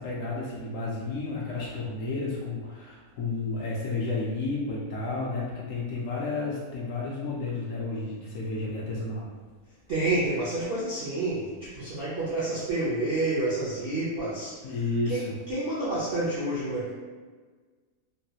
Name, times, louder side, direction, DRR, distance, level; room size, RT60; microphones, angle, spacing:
voice 1, 0.0-9.3 14.6-15.3, left 3 dB, 70° left, -4 dB, 0.8 m, -32 dB
voice 2, 9.9-14.7 15.1-16.9, right 2 dB, 65° right, -9 dB, 0.6 m, -29 dB
3.2 x 2.3 x 2.7 m, 1.4 s
omnidirectional pair, 1.7 m